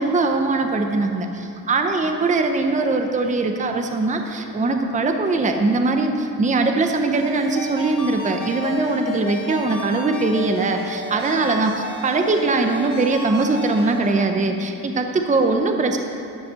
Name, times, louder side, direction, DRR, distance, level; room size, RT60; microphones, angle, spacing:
voice 1, 0.0-16.0, right 3 dB, 20° right, 5 dB, 0.6 m, -21 dB
Ringtone, 7.1-14.0, left 2 dB, 55° left, 1.5 m, -33 dB
12.5 x 5.4 x 6.8 m, 2.6 s
wide cardioid pair, 155°, 36 cm